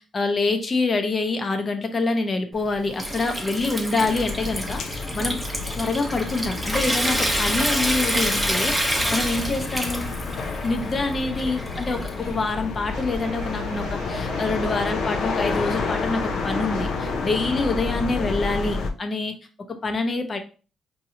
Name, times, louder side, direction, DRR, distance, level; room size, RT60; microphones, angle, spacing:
voice 1, 0.1-5.4 5.8-10.1 10.6-19.3 19.7-20.4, left 3 dB, 35° left, 6 dB, 0.8 m, -26 dB
Water tap faucet / Sink (filling or washing) / Trickle dribble, 2.5-12.5, equal, ahead, 0.9 m, -28 dB
sound 1, 4.0-18.9, left 4 dB, 70° left, 0.6 m, -30 dB
sound 2, 12.9-17.9, right 3 dB, 90° right, 0.9 m, -38 dB
4.6 x 2.8 x 2.8 m, 0.36 s
cardioid pair, 90°, 0 cm